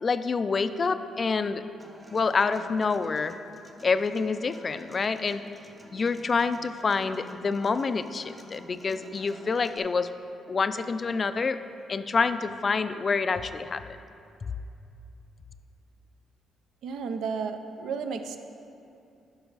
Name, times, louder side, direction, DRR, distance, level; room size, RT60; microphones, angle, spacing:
voice 1, 0.0-1.6 2.1-3.4 3.8-5.4 5.9-10.1 10.5-11.6 11.9-14.0, left 4 dB, 40° left, 11 dB, 0.3 m, -27 dB
Human voice / Acoustic guitar, 1.8-9.8, right 1 dB, 20° right, 0.6 m, -50 dB
voice 2, 16.8-18.4, right 5 dB, 75° right, 7 dB, 0.5 m, -32 dB
10.5 x 6.1 x 4.0 m, 2.7 s
cardioid pair, 90°, 0 cm